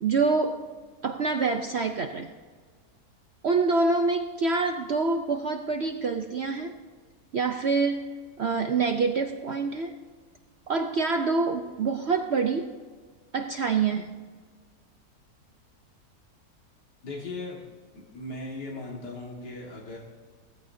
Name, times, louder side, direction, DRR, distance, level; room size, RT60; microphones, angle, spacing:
voice 1, 0.0-0.6 1.0-2.3 3.4-6.8 7.3-9.9 10.7-12.7 13.3-14.1, right 4 dB, 60° right, 6 dB, 0.7 m, -26 dB
voice 2, 17.0-17.6 17.9-20.0, left 2 dB, 80° left, -2 dB, 2.4 m, -38 dB
18.5 x 14.5 x 2.7 m, 1.5 s
omnidirectional pair, 1.8 m